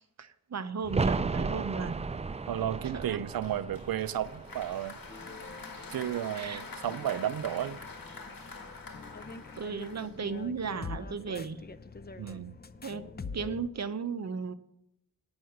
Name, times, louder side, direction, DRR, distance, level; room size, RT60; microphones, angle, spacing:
voice 1, 0.0-2.1 2.9-3.2 6.3-6.6 9.6-11.6 12.8-13.1 13.3-14.5, right 5 dB, 50° right, 0.8 m, -35 dB
sound 1, 0.8-6.4 6.7-6.8, right 4 dB, 20° right, 0.3 m, -35 dB
voice 2, 2.5-5.0 5.9-7.8 12.2-12.6, right 11 dB, 90° right, 0.5 m, -33 dB
Applause, 3.4-10.5, left 4 dB, 75° left, 1.7 m, -46 dB
sound 2, 5.1-13.7, left 4 dB, 30° left, 0.5 m, -45 dB
9.5 x 6.2 x 7.9 m
wide cardioid pair, 65°, 34 cm